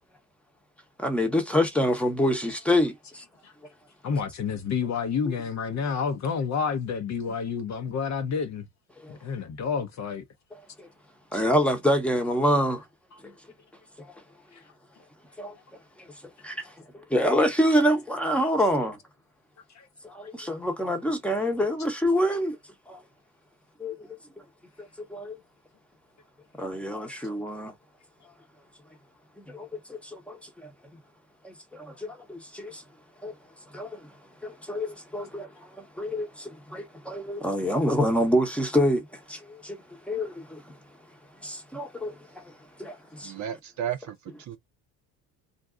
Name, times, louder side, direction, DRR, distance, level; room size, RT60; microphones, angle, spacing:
voice 1, 1.0-3.2 9.0-9.2 10.8-10.9 11.3-12.8 13.2-13.3 14.0-14.1 15.4-15.5 16.4-19.0 20.0-22.6 22.9-23.0 23.8-23.9 24.8-25.4 26.6-27.7 29.5-30.7 31.4-32.8 33.2-33.3 33.7-34.0 34.4-39.8 40.1-40.6 41.4-42.4 42.8-43.3, equal, 5° left, 0.9 m, -27 dB
voice 2, 4.0-8.7 9.1-10.2 11.3-11.4 14.5-14.6 19.7-19.9, left 6 dB, 40° left, 0.7 m, -29 dB
voice 3, 43.2-44.6, right 9 dB, 40° right, 0.6 m, -34 dB
2.6 x 2.2 x 3.6 m
hypercardioid pair, 75°, 45 cm